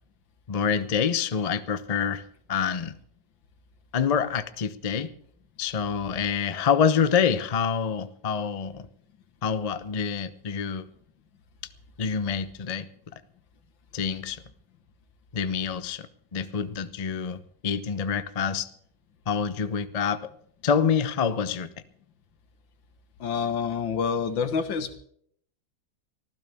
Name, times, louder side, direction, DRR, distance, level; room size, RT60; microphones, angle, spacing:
voice 1, 0.5-2.2 2.5-3.0 3.9-5.1 5.6-8.9 9.4-10.9 12.0-12.9 13.9-14.4 15.3-18.7 19.3-20.2 20.6-21.7, left 7 dB, 55° left, 12 dB, 0.4 m, -26 dB
voice 2, 23.2-25.0, left 6 dB, 85° left, 9 dB, 2.1 m, -27 dB
24.5 x 15.0 x 3.6 m, 0.65 s
omnidirectional pair, 2.0 m